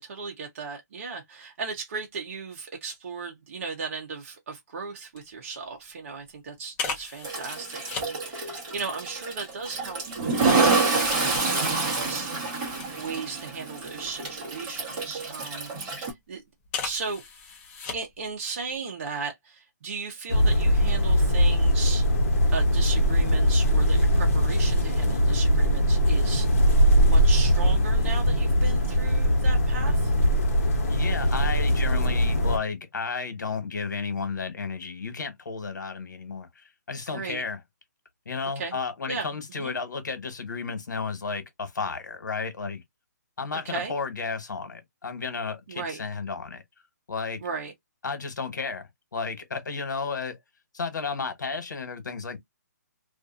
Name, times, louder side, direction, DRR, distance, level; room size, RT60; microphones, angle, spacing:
voice 1, 0.0-11.2 11.5-12.4 13.0-16.4 16.8-17.2 17.9-22.1 22.5-26.5 27.0-30.1 37.1-37.4 38.6-38.8 39.1-39.3 39.6-39.8 43.7-43.9 45.7-46.0 47.4-47.7, right 4 dB, 45° right, 0.8 m, -36 dB
sound 1, 5.2-5.3 5.6-5.8 6.7-8.1 8.9-13.4 13.8-15.1 15.7-16.1 16.6-18.3 18.6-18.8, left 5 dB, 15° left, 0.6 m, -38 dB
Toilet flush, 7.2-16.1, right 3 dB, 20° right, 1.2 m, -27 dB
sound 2, 20.3-32.6, equal, 45° left, 1.0 m, -21 dB
voice 2, 30.9-37.6 38.2-42.8 43.4-46.6 47.1-47.4 48.0-48.8 49.1-50.4 50.7-52.4, left 4 dB, 80° left, 1.2 m, -33 dB
2.5 x 2.5 x 2.5 m
hypercardioid pair, 165°, 10 cm